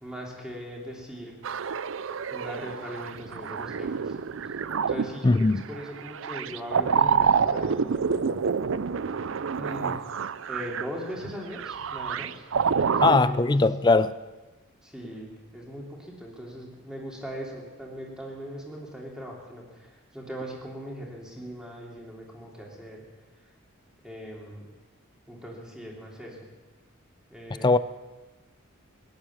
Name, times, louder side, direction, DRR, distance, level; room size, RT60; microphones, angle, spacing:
voice 1, 0.0-1.4 2.3-4.1 4.9-8.4 9.6-10.0 10.5-12.5 12.8-13.4 14.8-23.0 24.0-24.6 25.3-26.5 27.3-27.7, equal, 5° right, 3.0 m, -39 dB
sound 1, 1.4-13.2, right 6 dB, 65° right, 0.5 m, -28 dB
voice 2, 5.2-5.6 13.0-14.2 27.6-27.8, left 3 dB, 20° left, 0.4 m, -20 dB
19.0 x 10.5 x 7.3 m
head